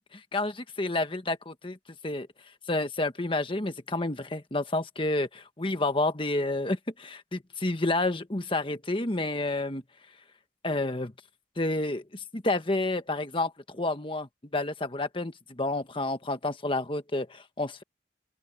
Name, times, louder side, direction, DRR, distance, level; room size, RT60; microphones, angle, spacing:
voice 1, 0.1-1.8 2.0-2.3 2.7-9.8 10.6-11.1 11.6-17.8, left 2 dB, 30° left, 1.4 m, -30 dB
open air
head